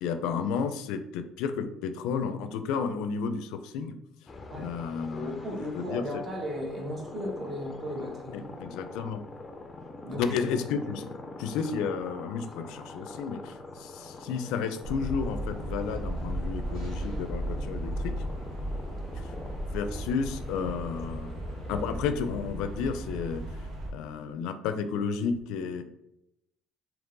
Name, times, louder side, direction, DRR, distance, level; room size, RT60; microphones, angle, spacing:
voice 1, 0.0-4.0 4.6-5.5 5.7-6.2 8.3-9.2 10.1-18.2 19.1-19.3 19.7-21.4 21.7-23.6 23.9-25.8, left 6 dB, 90° left, 9 dB, 0.4 m, -32 dB
sound 1, 4.3-21.9, left 2 dB, 20° left, 0.5 m, -44 dB
voice 2, 5.1-8.5 10.0-10.4, equal, 30° right, -1 dB, 1.1 m, -36 dB
sound 2, 14.8-23.9, right 1 dB, 70° right, 1.1 m, -35 dB
3.7 x 2.9 x 3.8 m, 0.83 s
cardioid pair, 150°, 0 cm